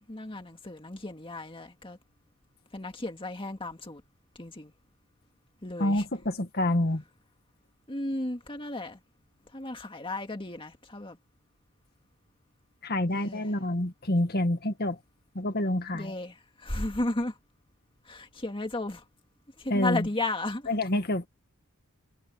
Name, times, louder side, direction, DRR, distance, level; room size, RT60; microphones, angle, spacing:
voice 1, 0.1-2.0 2.7-4.0 4.4-4.7 5.6-6.0 7.9-9.0 9.5-11.2 13.1-13.4 15.9-17.3 18.1-19.0 19.6-20.7, left 2 dB, 25° left, 2.1 m, -34 dB
voice 2, 5.8-7.0 12.8-15.0 15.4-16.1 19.7-20.1 20.7-21.3, left 1 dB, 45° left, 1.9 m, -27 dB
head